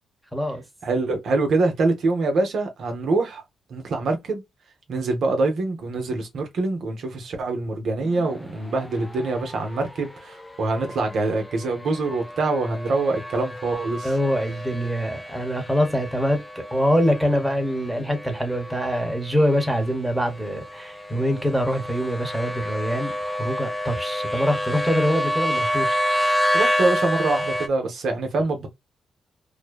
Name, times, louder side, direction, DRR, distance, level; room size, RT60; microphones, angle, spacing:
voice 1, 0.3-0.6 14.0-26.0, equal, 5° right, 1.1 m, -24 dB
voice 2, 0.8-3.4 3.7-4.4 4.9-14.1 26.5-28.7, right 3 dB, 65° right, 0.7 m, -24 dB
sound 1, 8.0-27.7, equal, 15° left, 0.4 m, -29 dB
2.6 x 2.1 x 2.2 m
supercardioid pair, 60°, 0 cm